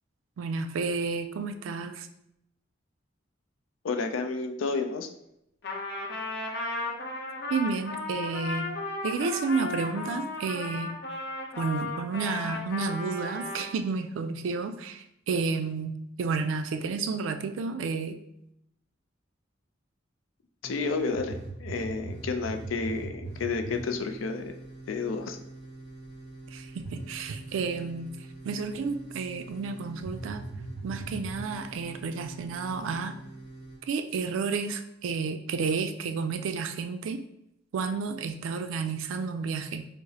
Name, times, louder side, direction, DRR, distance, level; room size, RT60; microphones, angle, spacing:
voice 1, 0.4-2.1 7.5-8.7 9.0-10.9 11.6-15.9 16.2-18.2 26.5-28.1 28.4-30.4 30.8-33.2 33.9-37.2 37.7-39.9, right 4 dB, 80° right, 9 dB, 0.3 m, -31 dB
voice 2, 3.8-5.1 20.6-24.5 24.9-25.4, left 4 dB, 90° left, 6 dB, 0.4 m, -31 dB
Trumpet, 5.6-13.7, left 2 dB, 55° left, 0.7 m, -35 dB
sound 1, 20.6-33.8, right 2 dB, 35° left, 1.1 m, -42 dB
4.7 x 2.0 x 2.7 m, 0.79 s
head